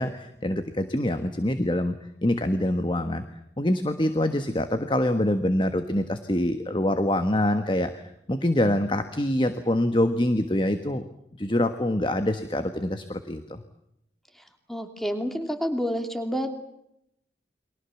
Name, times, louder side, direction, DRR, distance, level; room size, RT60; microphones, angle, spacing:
voice 1, 0.0-3.2 3.6-8.0 8.3-11.0 11.4-13.6, left 1 dB, 25° left, 9 dB, 1.4 m, -25 dB
voice 2, 14.7-16.6, equal, ahead, 6 dB, 2.8 m, -29 dB
30.0 x 23.5 x 7.2 m, 0.81 s
head